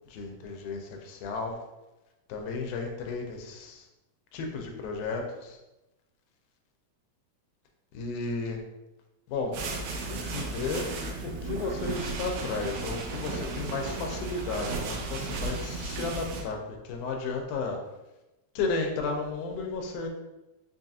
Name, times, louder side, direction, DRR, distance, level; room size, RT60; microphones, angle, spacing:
voice 1, 0.1-1.6 2.3-3.9 4.3-5.6 7.9-8.6 9.3-9.5 10.1-10.9 11.2-17.8 18.6-20.1, left 4 dB, 85° left, 2 dB, 2.1 m, -33 dB
sound 1, 9.5-16.4, right 3 dB, 85° right, 2.1 m, -34 dB
5.2 x 2.7 x 2.4 m, 1.0 s
omnidirectional pair, 3.5 m